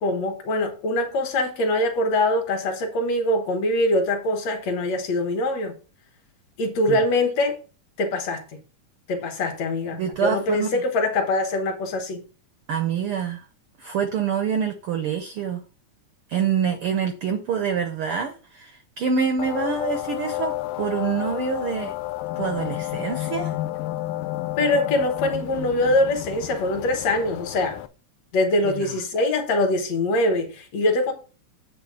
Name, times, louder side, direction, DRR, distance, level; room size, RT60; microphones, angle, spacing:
voice 1, 0.0-5.7 6.6-7.6 8.0-8.4 9.1-12.2 24.6-27.8 28.3-31.1, left 1 dB, 65° left, 2.2 m, -23 dB
voice 2, 10.0-10.8 12.7-13.4 13.8-15.6 16.3-21.9 22.4-23.5 28.6-29.0, right 7 dB, 85° right, 1.2 m, -26 dB
sound 1, 19.4-27.9, left 16 dB, 90° left, 2.1 m, -31 dB
8.3 x 3.5 x 6.2 m
omnidirectional pair, 3.6 m